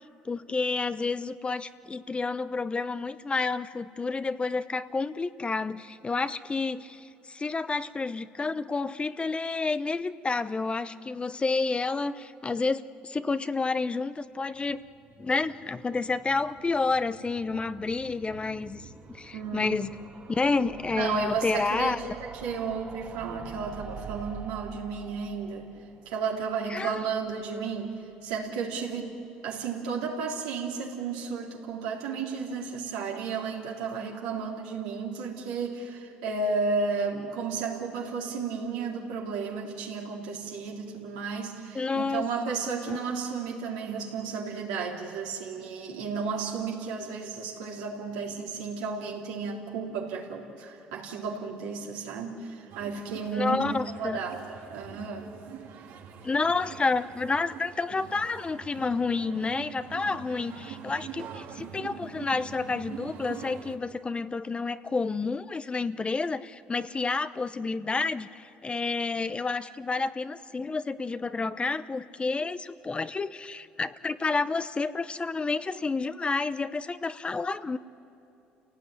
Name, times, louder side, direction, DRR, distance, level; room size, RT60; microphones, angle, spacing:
voice 1, 0.2-14.8 15.2-18.8 19.1-19.9 20.3-22.0 26.7-27.0 41.7-42.3 42.9-43.0 53.3-54.2 56.2-77.8, left 4 dB, 25° left, 13 dB, 0.8 m, -30 dB
sound 1, 14.4-27.4 27.7-27.8 28.0-28.1 28.3-28.4, right 6 dB, 40° right, 1.9 m, -46 dB
voice 2, 19.3-19.8 20.9-21.9 22.2-25.7 26.1-29.2 29.4-53.6 54.0-55.3, right 5 dB, 90° right, -2 dB, 3.6 m, -33 dB
sound 2, 52.7-63.8, right 8 dB, 75° right, 2.3 m, -44 dB
29.5 x 17.5 x 9.6 m, 2.8 s
supercardioid pair, 70°, 4 cm